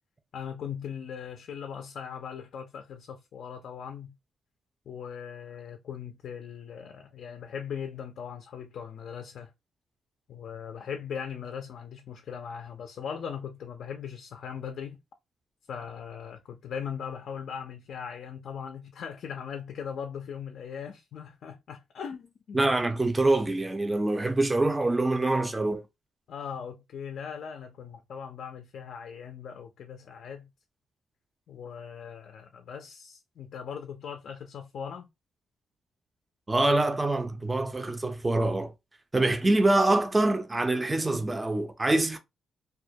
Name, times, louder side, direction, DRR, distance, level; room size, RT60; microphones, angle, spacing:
voice 1, 0.3-4.2 4.9-9.5 10.3-15.0 15.7-22.6 26.3-30.5 31.5-35.1, left 7 dB, 70° left, 0.3 m, -39 dB
voice 2, 22.5-25.8 36.5-38.7 39.1-42.2, right 2 dB, 20° right, 0.4 m, -25 dB
2.2 x 2.1 x 2.6 m
cardioid pair, 80°, 0 cm